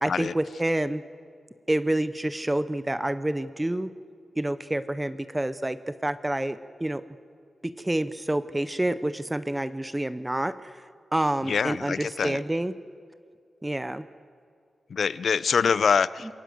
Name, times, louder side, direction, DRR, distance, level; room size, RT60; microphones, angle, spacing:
voice 1, 0.0-1.0 1.7-3.9 4.4-7.0 7.6-10.8 11.1-12.7 13.6-14.1, right 1 dB, 10° right, 13 dB, 0.6 m, -28 dB
voice 2, 11.4-12.4 14.9-16.3, left 6 dB, 65° left, 17 dB, 0.6 m, -24 dB
27.0 x 23.5 x 7.8 m, 2.3 s
wide cardioid pair, 155°, 0 cm